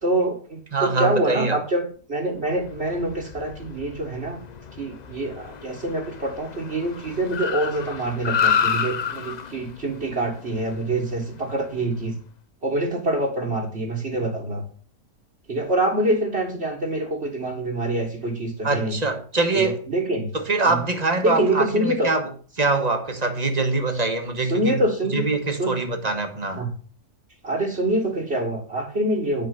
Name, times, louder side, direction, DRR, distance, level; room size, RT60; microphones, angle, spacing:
voice 1, 0.0-4.4 4.8-12.2 12.6-14.6 15.5-19.0 19.5-20.3 20.7-20.8 21.2-22.1 24.4-25.3 25.6-25.8 26.6-26.7 27.4-29.5, right 1 dB, 45° right, 1.9 m, -25 dB
voice 2, 0.7-1.6 18.6-19.8 20.3-22.3 22.6-24.8 25.1-26.6, right 3 dB, 25° right, 1.5 m, -24 dB
Car, 2.5-12.0, left 7 dB, 65° left, 0.4 m, -30 dB
10.5 x 5.1 x 6.8 m
omnidirectional pair, 1.6 m